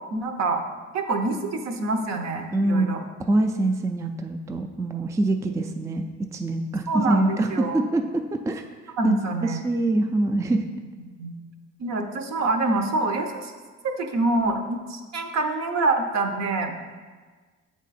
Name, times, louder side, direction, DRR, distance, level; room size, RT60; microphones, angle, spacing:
voice 1, 0.1-0.6 0.9-3.0 6.9-7.8 9.0-9.8 11.2-11.4 11.8-13.5 13.8-16.8, right 2 dB, 60° right, 5 dB, 0.8 m, -26 dB
voice 2, 2.5-8.6 9.0-9.2 9.4-10.6, right 2 dB, 10° right, 5 dB, 0.3 m, -25 dB
7.4 x 3.6 x 4.1 m, 1.4 s
cardioid pair, 90°, 30 cm